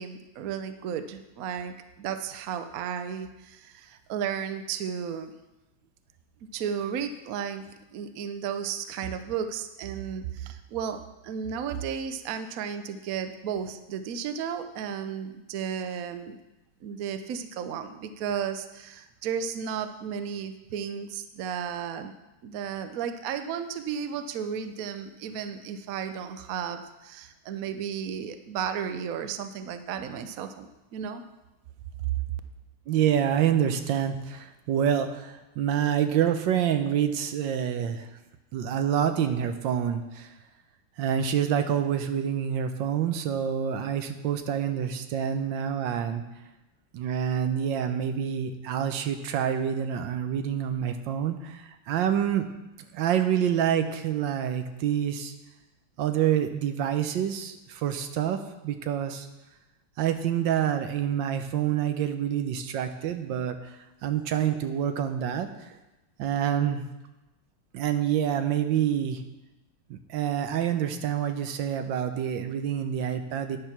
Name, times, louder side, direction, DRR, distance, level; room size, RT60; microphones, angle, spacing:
voice 1, 0.0-5.3 6.5-16.4 16.8-22.1 22.4-31.2, right 7 dB, 85° right, 9 dB, 0.7 m, -34 dB
voice 2, 32.9-38.1 38.5-40.3 41.0-46.2 46.9-52.5 52.9-55.3 56.0-58.4 58.6-59.3 60.0-63.6 64.0-65.7 66.2-66.8 67.7-69.2 69.9-73.6, right 9 dB, 70° right, 8 dB, 1.3 m, -27 dB
10.0 x 6.7 x 5.9 m, 1.0 s
omnidirectional pair, 2.3 m